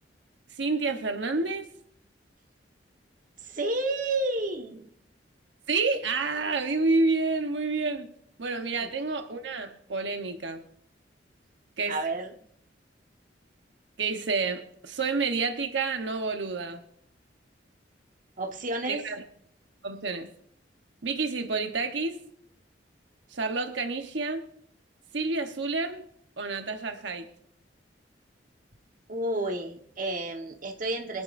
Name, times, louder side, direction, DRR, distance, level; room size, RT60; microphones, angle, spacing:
voice 1, 0.5-1.7 5.7-8.1 8.4-10.6 11.8-12.0 14.0-16.8 18.9-19.2 19.8-20.3 21.0-22.2 23.3-24.4 25.1-26.0 26.4-27.3, right 3 dB, 80° right, 1.1 m, -29 dB
voice 2, 3.4-4.9 8.8-8.9 11.9-12.3 18.4-19.0 29.1-31.2, right 2 dB, 45° right, 1.3 m, -31 dB
24.0 x 10.5 x 2.6 m
head